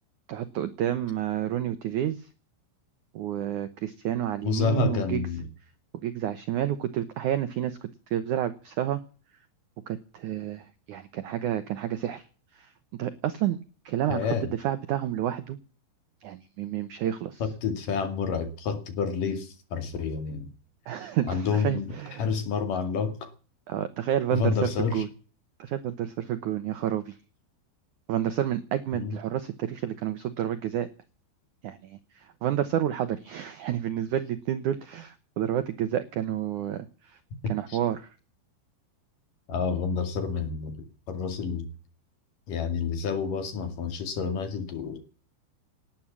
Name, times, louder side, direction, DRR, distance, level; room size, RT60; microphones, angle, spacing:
voice 1, 0.3-2.3 3.1-5.2 6.0-9.0 9.9-12.2 12.6-12.7 13.0-13.6 13.9-14.2 14.5-15.6 16.2-17.4 20.9-22.2 23.7-25.1 25.6-27.2 28.1-30.9 31.6-37.2 37.5-38.1, right 11 dB, 80° right, 1.7 m, -30 dB
voice 2, 4.4-5.4 14.1-14.5 17.4-20.5 21.3-23.3 24.3-25.0 28.9-29.2 37.4-37.8 39.5-41.7 42.5-45.0, left 5 dB, 55° left, 3.5 m, -29 dB
19.0 x 10.5 x 7.3 m
omnidirectional pair, 5.0 m